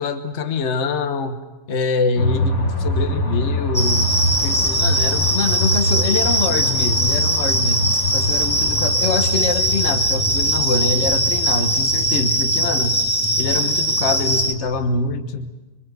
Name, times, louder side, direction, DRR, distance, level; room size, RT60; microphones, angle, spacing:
voice 1, 0.0-1.4 1.7-4.1 4.4-13.0 13.4-15.5, left 4 dB, 50° left, 8 dB, 1.5 m, -24 dB
sound 1, 2.2-15.1, left 1 dB, 70° left, 3.9 m, -25 dB
sound 2, 3.7-14.5, right 1 dB, 5° left, 1.6 m, -20 dB
26.5 x 24.0 x 8.0 m, 1.2 s
omnidirectional pair, 1.5 m